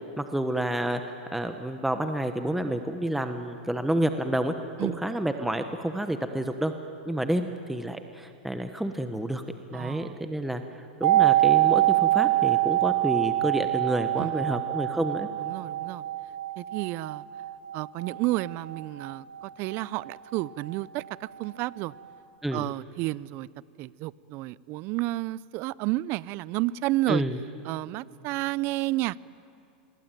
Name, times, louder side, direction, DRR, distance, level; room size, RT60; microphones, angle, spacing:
voice 1, 0.2-1.0 1.3-4.5 4.8-6.7 7.0-9.4 9.7-15.3 22.4-22.7 27.1-27.4, right 1 dB, 5° right, 7 dB, 1.2 m, -29 dB
voice 2, 9.7-10.2 14.2-14.6 15.4-16.0 16.6-17.2 17.7-19.3 19.6-21.9 22.5-23.5 23.8-27.2 27.6-29.3, right 18 dB, 45° right, 22 dB, 0.6 m, -31 dB
sound 1, 11.0-20.8 21.0-21.1, right 17 dB, 75° right, 2.3 m, -25 dB
28.0 x 22.0 x 9.3 m, 2.6 s
hypercardioid pair, 120°, 5 cm